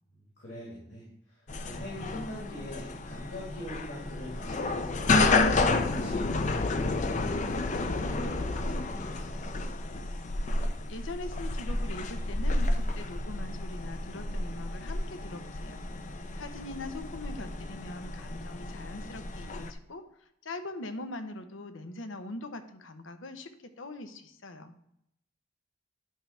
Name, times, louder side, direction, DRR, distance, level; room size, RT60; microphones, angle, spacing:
voice 1, 0.2-5.3 5.8-9.5, equal, 60° left, -5 dB, 2.6 m, -44 dB
sound 1, 1.5-19.7, left 2 dB, 40° left, 0.5 m, -31 dB
voice 2, 10.9-24.7, left 2 dB, 85° left, 9 dB, 0.9 m, -42 dB
10.0 x 3.4 x 5.7 m, 0.76 s
head